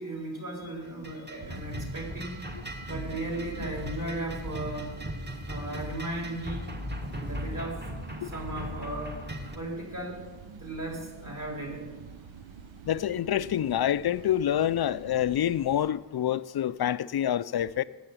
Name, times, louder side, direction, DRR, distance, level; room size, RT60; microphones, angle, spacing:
voice 1, 0.0-2.5 2.9-5.0 5.5-6.7 7.2-7.9 8.2-9.2 9.6-10.2 10.6-11.9, right 1 dB, 40° right, 3.9 m, -36 dB
sound 1, 0.8-9.6, equal, 20° right, 1.4 m, -38 dB
sound 2, 1.4-15.9, right 7 dB, 80° right, 0.6 m, -47 dB
voice 2, 12.9-17.8, left 10 dB, 55° left, 0.5 m, -27 dB
8.9 x 7.0 x 8.4 m
cardioid pair, 45°, 46 cm